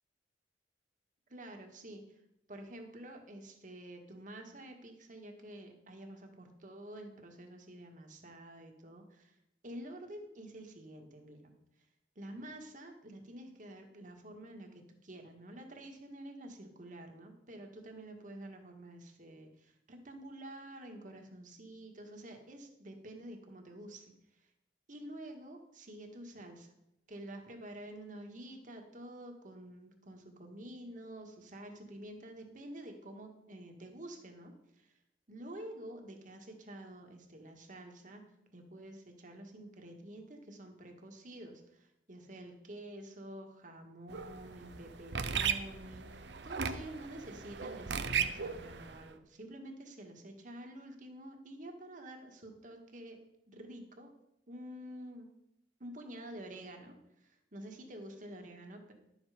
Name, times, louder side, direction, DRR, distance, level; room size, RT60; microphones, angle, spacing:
voice 1, 1.3-2.0 2.5-9.3 9.6-11.5 12.1-24.0 24.3-24.5 24.9-26.7 27.1-34.9 35.3-38.2 38.5-53.2 53.5-54.1 54.5-55.3 55.8-58.9, right 1 dB, 50° right, 3 dB, 1.7 m, -49 dB
sound 1, 44.1-49.0, right 6 dB, 85° right, 0.8 m, -37 dB
11.5 x 7.2 x 5.1 m, 0.83 s
head